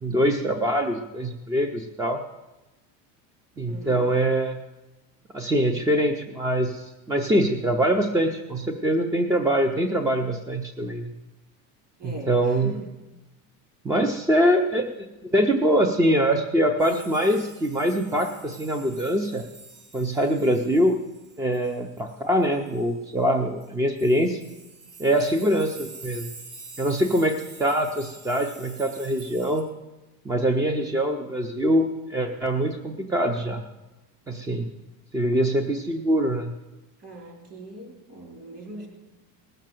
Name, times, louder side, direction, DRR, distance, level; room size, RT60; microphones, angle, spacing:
voice 1, 0.0-2.2 3.6-4.6 5.3-11.1 12.0-12.7 13.8-19.4 19.9-21.0 21.4-24.4 25.0-26.3 26.8-29.7 30.3-33.6 34.3-34.7 35.1-36.5, equal, 10° right, 6 dB, 0.3 m, -23 dB
voice 2, 3.7-4.1 12.0-12.9 37.0-38.9, right 1 dB, 35° right, 0 dB, 4.1 m, -40 dB
sound 1, 16.8-22.9 23.6-23.7 24.0-29.6, right 3 dB, 50° right, 4.3 m, -46 dB
18.5 x 6.6 x 7.5 m, 1.1 s
cardioid pair, 150°, 43 cm